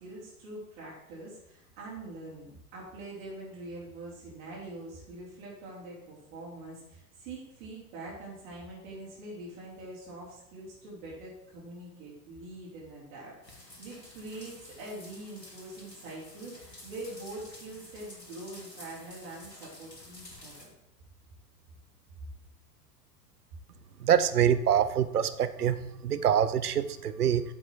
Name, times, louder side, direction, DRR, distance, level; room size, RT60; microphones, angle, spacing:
voice 1, 0.0-20.7, right 2 dB, 45° right, -7 dB, 4.2 m, -44 dB
sound 1, 13.4-20.7, left 1 dB, 90° left, 2.1 m, -50 dB
voice 2, 24.0-25.8 26.0-27.4, right 9 dB, 70° right, 13 dB, 0.8 m, -25 dB
9.1 x 7.2 x 4.7 m, 0.81 s
figure-of-eight pair, 95°, 48 cm